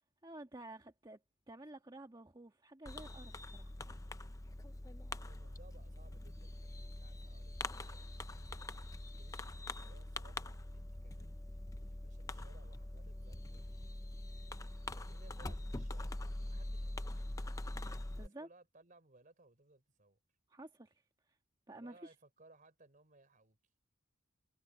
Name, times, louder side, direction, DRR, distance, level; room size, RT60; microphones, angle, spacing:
voice 1, 0.2-1.2 1.5-3.7 18.2-18.5 20.5-21.4 21.7-22.1, right 1 dB, 20° right, 1.6 m, -52 dB
Fireworks, 2.9-18.3, left 1 dB, 15° left, 0.6 m, -44 dB
voice 2, 5.2-11.4 11.7-14.2 14.9-16.1 16.4-17.4 18.1-20.2 21.7-23.6, right 2 dB, 40° right, 4.4 m, -64 dB
head